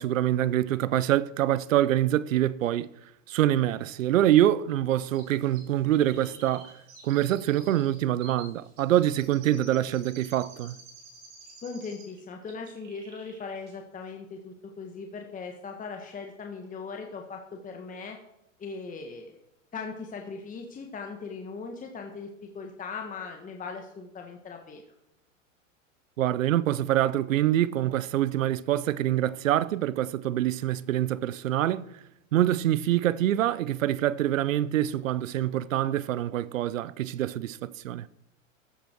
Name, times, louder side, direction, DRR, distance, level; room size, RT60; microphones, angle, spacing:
voice 1, 0.0-2.9 3.3-6.7 7.0-10.8 26.2-31.8 32.3-38.1, right 12 dB, 80° right, 0.7 m, -25 dB
Chirp tweet, 5.1-12.2 12.5-13.4 13.7-13.8, right 4 dB, 45° right, 5.5 m, -51 dB
voice 2, 11.6-18.2 18.6-19.4 19.7-24.8, left 4 dB, 20° left, 1.5 m, -39 dB
14.5 x 8.3 x 4.5 m
hypercardioid pair, 105°, 39 cm